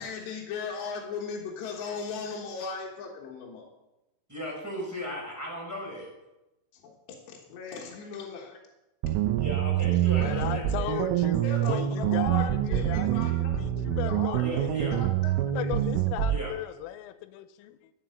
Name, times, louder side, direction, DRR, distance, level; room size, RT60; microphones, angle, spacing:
voice 1, 0.0-3.7 6.7-8.6 10.0-15.8, left 5 dB, 70° left, -1 dB, 3.3 m, -38 dB
voice 2, 4.3-6.1 9.4-10.7 14.3-14.9 16.3-16.5, equal, 5° right, -3 dB, 3.8 m, -36 dB
sound 1, 9.0-16.4, right 12 dB, 85° right, 3.2 m, -26 dB
voice 3, 10.2-15.0 15.5-17.9, left 13 dB, 90° left, 11 dB, 3.3 m, -36 dB
12.0 x 7.5 x 7.8 m, 0.97 s
omnidirectional pair, 5.8 m